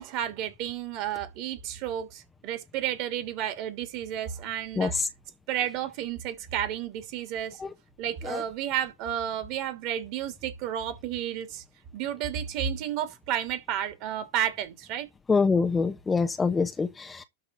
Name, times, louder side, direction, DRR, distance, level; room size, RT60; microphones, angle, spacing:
voice 1, 0.0-4.9 5.5-7.6 8.0-11.6 11.9-15.1, right 10 dB, 45° right, 2.9 m, -32 dB
voice 2, 4.8-5.1 7.6-7.7 8.2-8.4 15.3-17.2, left 4 dB, 15° left, 1.0 m, -25 dB
12.5 x 4.2 x 6.9 m
figure-of-eight pair, 90°, 0 cm